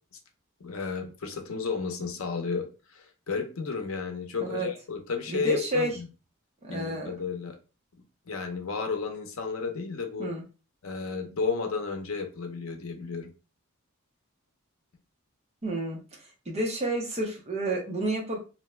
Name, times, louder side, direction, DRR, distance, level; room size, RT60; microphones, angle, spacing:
voice 1, 0.6-6.1 6.7-7.6 8.3-10.3 10.8-13.3, left 5 dB, 75° left, 5 dB, 0.6 m, -33 dB
voice 2, 5.3-5.9 6.6-7.1 10.2-10.4 15.6-16.0 16.5-18.4, right 1 dB, 30° right, -1 dB, 0.8 m, -30 dB
2.6 x 2.2 x 3.1 m, 0.33 s
head